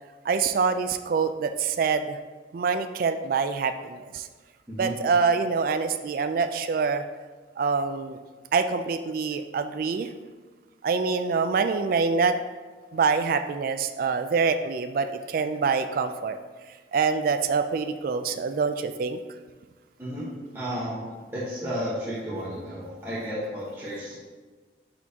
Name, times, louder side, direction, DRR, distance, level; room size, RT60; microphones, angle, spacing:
voice 1, 0.2-2.2 2.5-4.3 4.8-7.0 7.6-8.2 8.5-10.1 10.8-12.4 12.9-16.4 16.9-19.2, right 5 dB, 50° right, 8 dB, 0.3 m, -25 dB
voice 2, 20.0-21.0 21.3-24.2, equal, 15° right, -9 dB, 1.2 m, -33 dB
10.5 x 4.3 x 2.8 m, 1.4 s
head